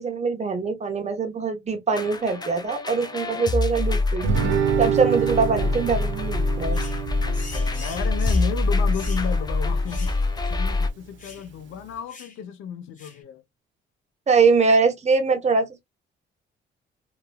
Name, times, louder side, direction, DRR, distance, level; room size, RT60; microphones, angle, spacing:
voice 1, 0.0-4.3 4.8-6.8 14.3-15.8, right 4 dB, 35° right, 1.0 m, -22 dB
sound 1, 1.9-10.9, left 3 dB, 20° left, 0.5 m, -25 dB
Guitar, 4.2-9.3, right 8 dB, 70° right, 0.6 m, -27 dB
sound 2, 6.7-7.0 7.3-8.5 8.9-9.3 9.9-10.2 10.4-10.6 11.2-11.5 12.1-12.4 13.0-13.2, left 4 dB, 40° left, 1.3 m, -42 dB
voice 2, 7.2-13.4, left 8 dB, 85° left, 0.6 m, -34 dB
2.9 x 2.6 x 2.2 m
cardioid pair, 90°, 20 cm